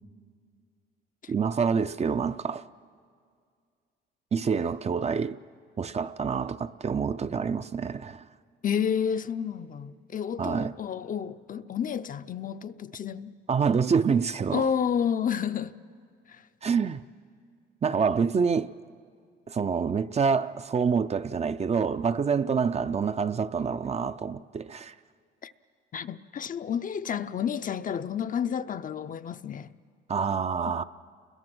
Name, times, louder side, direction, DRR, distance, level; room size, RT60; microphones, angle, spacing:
voice 1, 1.3-2.6 4.3-5.4 5.8-8.2 10.4-10.7 13.5-14.7 16.6-17.0 17.8-18.7 19.5-24.9 30.1-30.8, right 6 dB, 35° right, 0.5 m, -27 dB
voice 2, 8.6-13.4 14.5-15.8 16.3-16.4 25.4-25.5 25.9-29.7, left 8 dB, 45° left, 0.6 m, -30 dB
29.5 x 21.5 x 6.1 m
cardioid pair, 90°, 20 cm